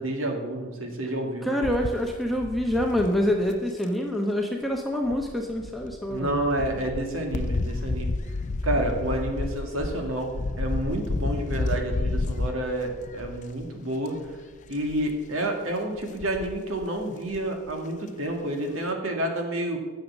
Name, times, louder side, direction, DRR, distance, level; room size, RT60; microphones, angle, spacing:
voice 1, 0.0-1.5 6.1-8.2 8.6-14.2 14.7-19.8, right 1 dB, 85° right, 2 dB, 2.0 m, -29 dB
voice 2, 1.4-6.4, equal, ahead, 0 dB, 0.9 m, -26 dB
sound 1, 1.6-3.8 5.1-13.7 14.1-14.4 14.6-15.2 16.0-16.9 17.3-17.4 17.7-17.8, left 2 dB, 35° left, 0.4 m, -31 dB
9.3 x 6.7 x 7.4 m, 1.3 s
head